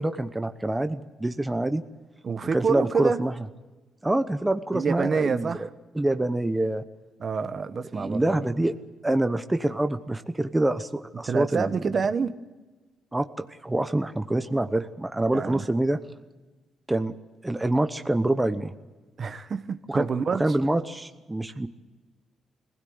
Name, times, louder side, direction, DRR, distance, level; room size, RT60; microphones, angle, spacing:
voice 1, 0.0-1.8 2.5-3.3 4.0-5.7 5.9-6.8 7.9-8.7 9.0-12.0 13.1-16.0 16.9-17.1 17.4-18.7 19.9-20.1 20.4-21.7, right 1 dB, 10° right, 9 dB, 0.9 m, -26 dB
voice 2, 2.2-3.2 4.7-5.7 7.2-8.5 11.3-12.3 15.3-15.6 19.2-20.4 21.6-21.7, right 5 dB, 45° right, 10 dB, 1.1 m, -27 dB
22.0 x 16.5 x 7.9 m, 1.2 s
cardioid pair, 90°, 0 cm